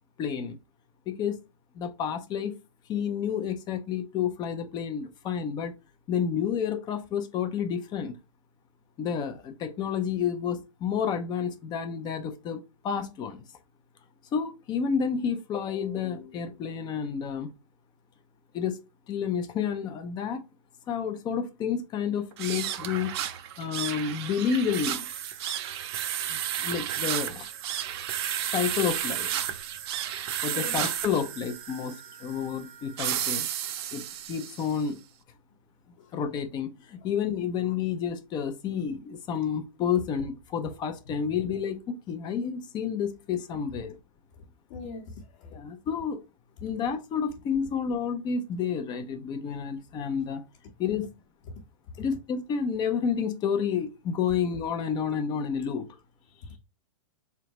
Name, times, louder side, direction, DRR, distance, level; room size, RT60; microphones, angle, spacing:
voice 1, 0.2-0.6 1.1-1.4 1.7-2.5 2.9-5.7 6.1-8.2 9.0-13.4 14.3-17.5 18.5-18.8 19.1-20.4 20.9-23.2 23.6-25.1 26.3-27.5 28.5-29.3 30.4-33.5 33.9-35.0 36.1-44.0 45.5-46.2 46.6-50.4 50.8-51.1 52.0-55.9, left 7 dB, 25° left, 0.5 m, -30 dB
sound 1, 22.3-34.8, right 10 dB, 50° right, 0.5 m, -33 dB
voice 2, 44.7-45.6 51.9-52.0 56.3-56.6, left 3 dB, 45° left, 1.0 m, -42 dB
3.8 x 3.3 x 2.9 m
hypercardioid pair, 130°, 18 cm